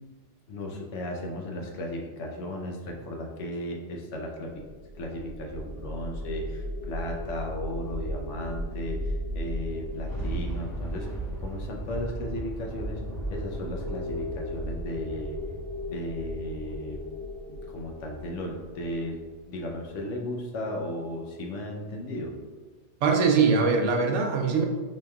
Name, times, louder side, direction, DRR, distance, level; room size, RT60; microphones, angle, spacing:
voice 1, 0.5-4.6 5.0-11.1 11.4-15.4 15.8-17.0 17.5-19.2 19.5-22.3, left 1 dB, 80° left, 0 dB, 1.0 m, -35 dB
sound 1, 4.6-19.7, left 1 dB, 55° right, 0.6 m, -37 dB
Thunder, 9.7-17.2 17.7-17.8, right 1 dB, 25° left, 0.6 m, -37 dB
voice 2, 23.0-24.7, right 5 dB, 80° right, 2 dB, 0.9 m, -22 dB
4.6 x 3.1 x 2.3 m, 1.4 s
omnidirectional pair, 1.2 m